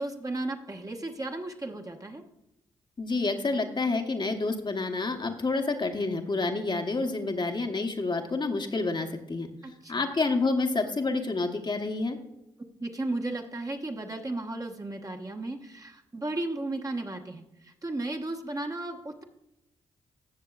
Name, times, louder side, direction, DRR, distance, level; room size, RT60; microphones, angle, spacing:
voice 1, 0.0-2.2 9.6-10.1 12.8-19.2, right 2 dB, 25° right, 3 dB, 1.3 m, -35 dB
voice 2, 3.0-9.5 9.9-12.2, left 3 dB, 35° left, 4 dB, 1.2 m, -28 dB
15.0 x 6.8 x 2.4 m, 0.88 s
hypercardioid pair, 40°, 13 cm